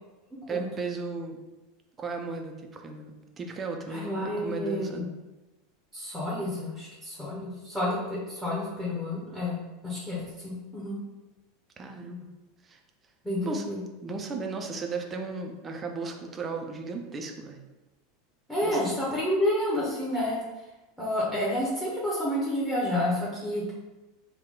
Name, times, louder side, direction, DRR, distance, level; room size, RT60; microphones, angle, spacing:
voice 1, 0.5-1.4 2.0-5.1 11.8-12.3 12.6-12.8 13.4-13.6 14.0-17.6 18.6-18.8, right 4 dB, 25° right, 3 dB, 0.5 m, -35 dB
voice 2, 3.9-5.0 5.9-9.6 9.8-11.0 13.2-13.8 18.5-20.4 21.0-23.7, left 1 dB, ahead, -6 dB, 1.1 m, -29 dB
3.6 x 2.3 x 3.6 m, 1.1 s
figure-of-eight pair, 80°, 0 cm